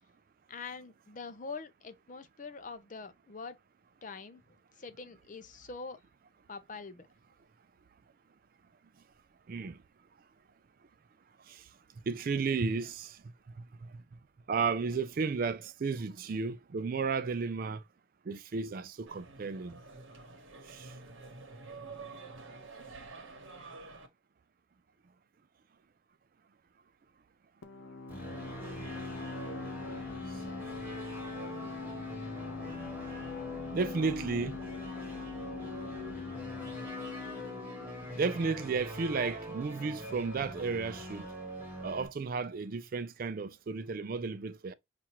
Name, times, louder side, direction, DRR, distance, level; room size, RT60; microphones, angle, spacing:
voice 1, 0.5-3.6 4.0-4.4 4.8-6.0 6.5-7.1, left 4 dB, 40° left, 0.6 m, -44 dB
voice 2, 9.5-9.8 11.5-11.6 12.1-13.2 14.5-17.8 18.3-19.8 20.7-20.9 33.7-34.6 38.1-41.3 41.8-44.7, right 4 dB, 45° right, 0.4 m, -33 dB
sound 1, 19.1-24.1, right 3 dB, 90° right, 1.0 m, -48 dB
sound 2, 27.6-39.0, left 5 dB, 90° left, 0.8 m, -43 dB
sound 3, 28.1-42.1, equal, 10° right, 1.4 m, -43 dB
5.6 x 2.5 x 2.9 m
head